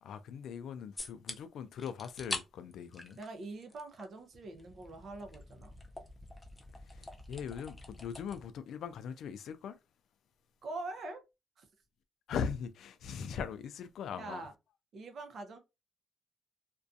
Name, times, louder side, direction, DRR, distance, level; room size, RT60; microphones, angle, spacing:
voice 1, 0.0-3.2 6.9-9.8 12.3-14.5, left 7 dB, 80° left, 0.3 m, -40 dB
sound 1, 1.0-1.4 1.8-2.4 2.7-4.1 4.3-8.5, left 2 dB, 15° left, 0.5 m, -44 dB
voice 2, 3.2-5.8 10.6-11.2 11.6-11.7 14.1-14.5 14.9-15.6, right 2 dB, 60° right, 0.6 m, -44 dB
2.4 x 2.2 x 2.6 m
cardioid pair, 120°, 0 cm